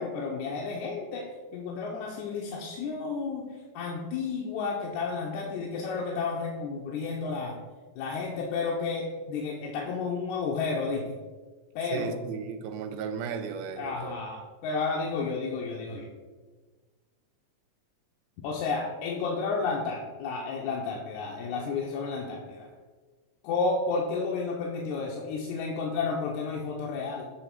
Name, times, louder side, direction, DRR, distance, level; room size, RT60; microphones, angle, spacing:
voice 1, 0.0-7.6 8.0-11.2 11.7-12.1 13.8-16.1 18.4-22.7 23.4-27.2, left 4 dB, 90° left, -1 dB, 2.1 m, -32 dB
voice 2, 11.9-14.2, right 6 dB, 75° right, 7 dB, 1.7 m, -35 dB
7.9 x 3.6 x 4.6 m, 1.4 s
omnidirectional pair, 3.3 m